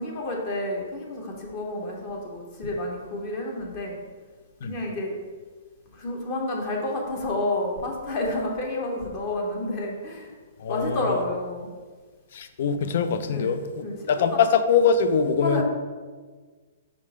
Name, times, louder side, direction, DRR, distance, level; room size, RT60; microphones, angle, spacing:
voice 1, 0.0-4.0 4.6-5.2 5.9-10.3 10.7-11.7 13.3-14.4 15.4-15.6, left 1 dB, 25° left, 0 dB, 0.8 m, -30 dB
voice 2, 10.6-11.0 12.3-13.7 14.1-15.6, left 6 dB, 45° left, 10 dB, 0.4 m, -22 dB
5.4 x 3.7 x 4.8 m, 1.4 s
hypercardioid pair, 180°, 0 cm